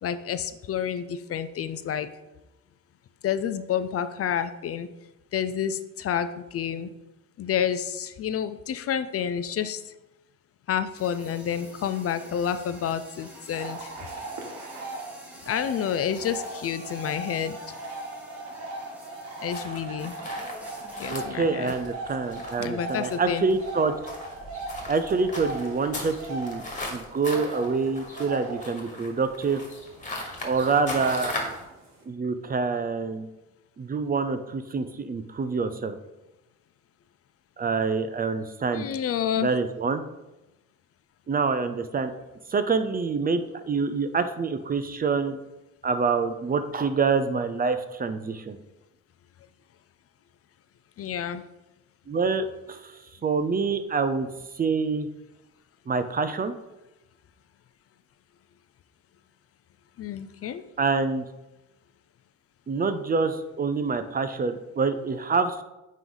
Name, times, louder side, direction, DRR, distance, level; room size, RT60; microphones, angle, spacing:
voice 1, 0.0-2.1 3.2-4.9 5.3-6.9 7.4-9.8 10.7-13.9 15.5-17.6 19.4-20.2 21.0-21.7 22.6-23.5 38.7-39.5 51.0-51.4 60.0-60.6, left 8 dB, 50° left, 12 dB, 0.5 m, -29 dB
sound 1, 11.0-19.7 20.0-21.1, equal, 5° right, 1.6 m, -48 dB
sound 2, 13.5-32.0, right 2 dB, 60° right, 1.5 m, -39 dB
sound 3, 19.5-31.6, left 1 dB, 25° left, 1.7 m, -38 dB
voice 2, 21.1-23.9 24.9-26.6 26.9-29.6 30.4-31.3 32.1-33.3 33.8-36.0 37.6-38.9 39.4-40.0 41.3-42.1 42.5-45.4 45.8-48.6 52.1-52.9 53.2-54.3 54.5-55.1 55.9-56.5 60.8-61.2 62.7-65.6, right 4 dB, 30° right, 10 dB, 0.5 m, -26 dB
9.0 x 3.1 x 3.9 m, 0.97 s
cardioid pair, 90°, 30 cm